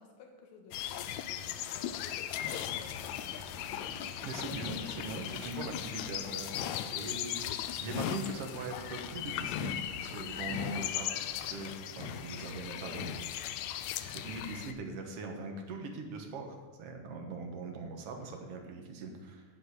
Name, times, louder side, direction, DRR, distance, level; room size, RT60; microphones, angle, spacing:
voice 1, 0.0-4.1 4.5-5.1 5.5-5.7 7.1-7.3 12.4-13.0, left 4 dB, 65° left, 1 dB, 2.7 m, -54 dB
sound 1, 0.7-14.7, left 10 dB, 90° left, 1.6 m, -38 dB
Human voice / Acoustic guitar, 2.8-10.8, left 1 dB, 5° right, 1.8 m, -60 dB
Thunder / Rain, 2.8-14.5, right 5 dB, 85° right, 2.5 m, -57 dB
voice 2, 4.2-6.5 6.9-7.4 7.8-13.1 14.1-19.4, right 3 dB, 60° right, 3 dB, 1.7 m, -41 dB
9.8 x 5.3 x 8.0 m, 1.3 s
omnidirectional pair, 3.8 m